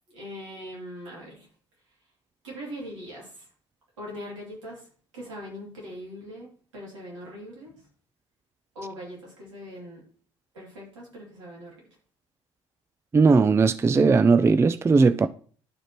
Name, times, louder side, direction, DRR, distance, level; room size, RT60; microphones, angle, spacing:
voice 1, 0.1-1.5 2.4-3.5 4.0-4.9 5.1-7.7 8.7-10.1 10.5-11.9, equal, 80° right, 2.6 m, -41 dB
voice 2, 13.1-15.3, right 4 dB, 15° right, 0.4 m, -18 dB
11.5 x 4.9 x 3.0 m
figure-of-eight pair, 55°, 16 cm